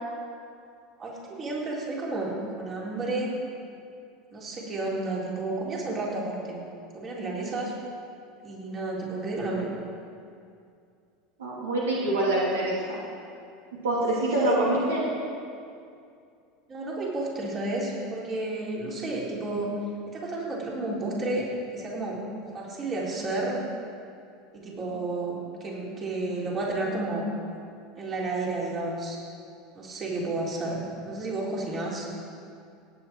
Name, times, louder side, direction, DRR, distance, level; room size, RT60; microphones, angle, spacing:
voice 1, 1.0-3.3 4.3-6.6 6.9-7.7 8.4-9.7 14.3-14.6 16.7-19.7 20.1-21.5 21.7-22.2 22.5-23.6 24.5-27.3 28.0-29.2 29.8-32.1, right 2 dB, 35° right, -4 dB, 3.8 m, -31 dB
voice 2, 11.4-13.0 13.8-15.1, right 1 dB, 80° right, -5 dB, 2.7 m, -25 dB
17.5 x 8.9 x 4.6 m, 2.4 s
hypercardioid pair, 80°, 0 cm